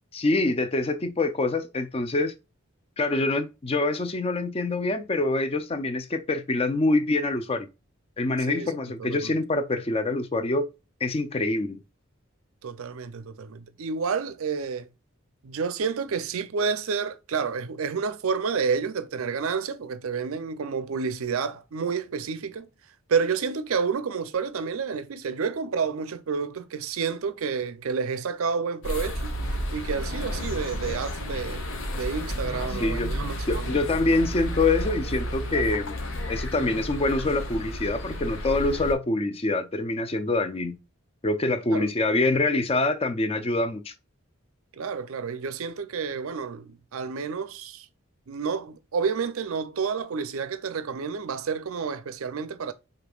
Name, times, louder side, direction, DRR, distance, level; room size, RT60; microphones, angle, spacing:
voice 1, 0.1-2.3 3.0-7.7 8.2-10.7 11.0-11.8 32.5-33.1 33.5-35.9 36.3-40.8 41.2-43.9, left 2 dB, 25° left, 0.4 m, -25 dB
voice 2, 9.0-9.4 12.6-14.9 15.4-22.7 23.1-29.3 29.7-33.8 41.7-41.9 44.8-47.9 48.3-52.7, right 5 dB, 75° right, 0.5 m, -30 dB
sound 1, 28.8-38.9, equal, 65° left, 0.9 m, -31 dB
5.1 x 3.3 x 2.3 m
head